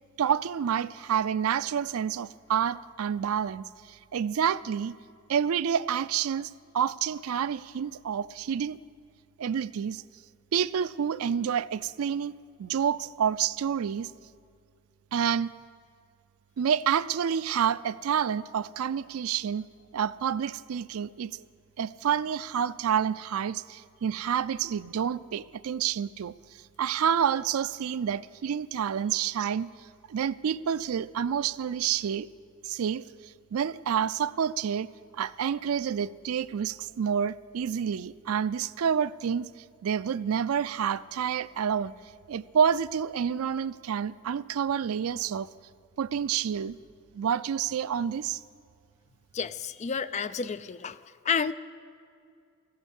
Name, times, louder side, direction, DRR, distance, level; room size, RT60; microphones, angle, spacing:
voice 1, 0.2-5.0 5.3-8.8 9.4-10.0 10.5-12.3 12.6-14.1 15.1-15.5 16.6-19.7 19.9-21.4 21.8-26.3 26.8-29.7 30.1-32.3 32.6-34.9 35.1-39.5 39.8-41.9 42.3-45.5 46.0-46.8 47.1-48.4, right 8 dB, 80° right, 17 dB, 0.4 m, -28 dB
voice 2, 49.3-51.0 51.2-51.5, left 6 dB, 30° left, 14 dB, 0.4 m, -30 dB
14.5 x 9.7 x 8.2 m, 2.3 s
head